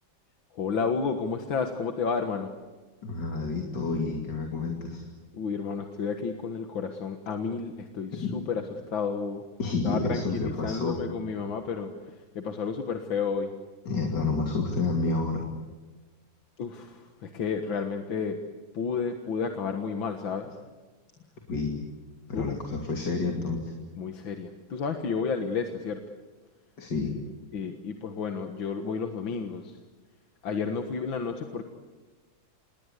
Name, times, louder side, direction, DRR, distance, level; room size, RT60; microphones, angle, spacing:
voice 1, 0.5-2.5 5.3-8.6 8.9-9.4 9.8-11.9 12.4-13.5 16.6-18.4 18.7-20.5 22.3-22.6 24.0-26.0 27.5-29.8 30.4-31.6, left 5 dB, 80° left, 5 dB, 2.3 m, -31 dB
voice 2, 3.0-5.0 8.2-8.4 9.6-11.0 13.8-15.4 21.5-21.7 22.3-23.7 26.8-27.1, left 3 dB, 60° left, 2 dB, 3.4 m, -29 dB
28.0 x 21.5 x 8.2 m, 1.3 s
omnidirectional pair, 2.1 m